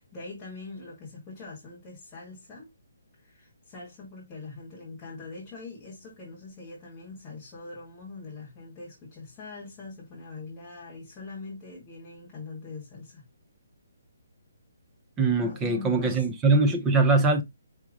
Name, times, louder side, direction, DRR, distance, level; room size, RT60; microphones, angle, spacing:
voice 1, 0.0-2.7 3.2-13.2 15.4-16.3, left 3 dB, 10° left, 0.9 m, -42 dB
voice 2, 15.2-17.4, right 3 dB, 10° right, 0.4 m, -22 dB
4.8 x 2.9 x 3.4 m
hypercardioid pair, 180°, 0 cm